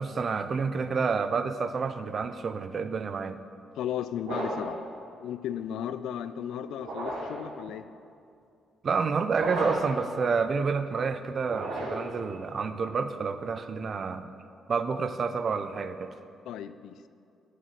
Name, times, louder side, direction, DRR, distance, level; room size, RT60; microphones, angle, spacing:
voice 1, 0.0-3.4 8.8-14.3 14.7-16.1, right 5 dB, 45° right, 11 dB, 0.7 m, -29 dB
voice 2, 3.8-4.8 5.2-7.8 16.4-17.0, left 9 dB, 80° left, 12 dB, 0.5 m, -35 dB
sound 1, 4.2-4.8 6.8-7.4 9.3-10.0 11.4-12.2, right 1 dB, 80° right, 3.4 m, -33 dB
11.0 x 6.6 x 8.0 m, 2.4 s
cardioid pair, 90°, 0 cm